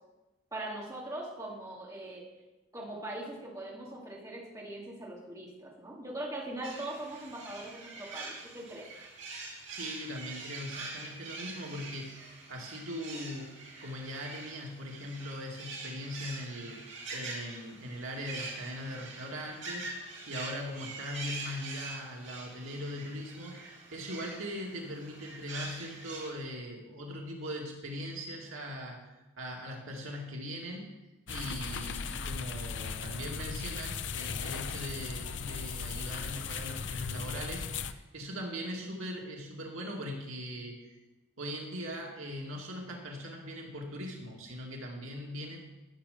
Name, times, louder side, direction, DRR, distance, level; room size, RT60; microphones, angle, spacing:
voice 1, 0.5-2.2 2.7-8.9, right 1 dB, 15° right, -4 dB, 2.7 m, -41 dB
sound 1, 6.6-26.3, right 3 dB, 65° right, 3.3 m, -44 dB
voice 2, 9.7-12.2 12.5-13.5 13.8-16.8 17.1-29.1 29.4-31.0 31.3-40.9 41.4-45.6, equal, 90° right, 0 dB, 2.4 m, -40 dB
sound 2, 31.3-37.9, left 5 dB, 60° left, 0.6 m, -37 dB
13.0 x 6.8 x 6.7 m, 1.1 s
head